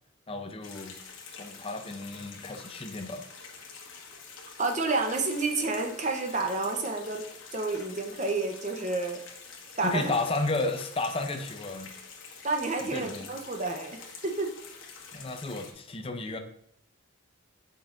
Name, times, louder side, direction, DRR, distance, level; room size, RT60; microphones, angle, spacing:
voice 1, 0.3-1.0 1.3-3.2 9.8-12.0 12.8-13.3 15.1-16.4, left 2 dB, 25° left, 6 dB, 0.6 m, -32 dB
sound 1, 0.6-15.7, left 5 dB, 75° left, 1.3 m, -47 dB
voice 2, 4.6-7.2 7.5-9.2 9.8-10.1 12.4-14.5, right 3 dB, 35° right, 3 dB, 0.8 m, -30 dB
7.5 x 5.2 x 2.6 m, 0.70 s
head